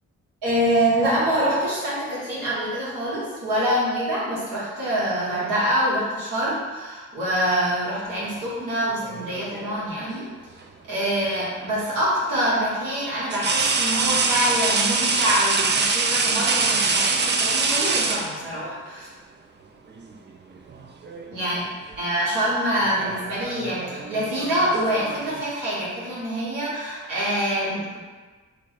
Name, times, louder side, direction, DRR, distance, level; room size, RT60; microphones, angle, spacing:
voice 1, 0.4-10.2 10.9-19.1 21.3-21.6 22.0-28.0, equal, 80° right, -8 dB, 1.4 m, -25 dB
sound 1, 9.0-9.9 11.6-11.8 13.3-18.8 20.0-20.2 20.6-21.3 21.6-22.0 22.8-25.4, right 4 dB, 35° right, 0.4 m, -24 dB
3.3 x 2.2 x 4.0 m, 1.3 s
supercardioid pair, 50°, 32 cm